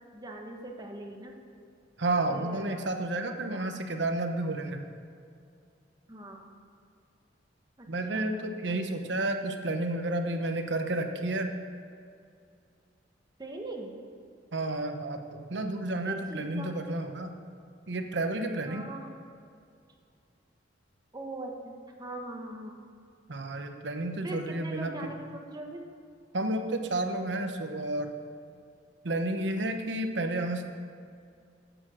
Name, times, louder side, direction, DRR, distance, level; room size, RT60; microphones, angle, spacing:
voice 1, 0.1-1.4 2.3-2.9 3.5-3.7 6.1-6.6 7.8-7.9 8.1-8.5 13.4-13.9 16.0-16.7 18.7-19.2 21.1-21.7 22.0-22.7 24.2-25.8, right 2 dB, 20° right, 2 dB, 1.2 m, -41 dB
voice 2, 2.0-4.8 7.9-11.5 14.5-17.3 17.9-18.9 23.3-25.1 26.3-28.1 29.0-30.6, right 2 dB, 70° right, 5 dB, 1.0 m, -31 dB
11.0 x 8.1 x 6.3 m, 2.3 s
head